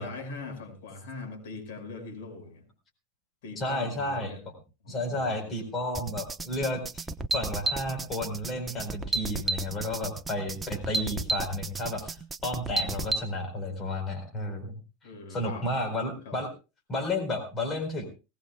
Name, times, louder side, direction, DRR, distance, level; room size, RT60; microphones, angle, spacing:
voice 1, 0.0-2.6 3.4-4.4 4.8-5.5 12.7-13.1 15.0-15.7 16.3-16.4, left 3 dB, 80° left, 4 dB, 5.5 m, -41 dB
voice 2, 3.6-4.4 4.9-7.1 7.3-12.2 12.4-14.8 15.3-16.5 16.9-18.1, left 1 dB, 25° left, 4 dB, 4.3 m, -32 dB
sound 1, 5.9-13.2, right 2 dB, 10° right, 0.9 m, -32 dB
19.5 x 18.5 x 2.3 m, 0.31 s
supercardioid pair, 135°, 0 cm